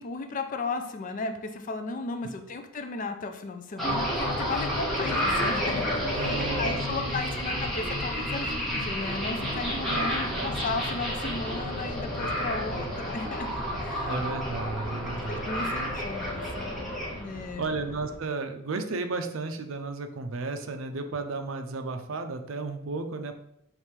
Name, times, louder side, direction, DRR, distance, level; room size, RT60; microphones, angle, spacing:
voice 1, 0.0-14.1 15.3-17.7, left 3 dB, 40° left, 6 dB, 0.4 m, -35 dB
sound 1, 3.8-18.2, equal, ahead, 1.2 m, -30 dB
voice 2, 6.1-7.7 9.9-10.5 14.1-15.5 17.6-23.3, right 3 dB, 70° right, 7 dB, 0.5 m, -34 dB
5.1 x 3.2 x 3.2 m, 0.75 s
head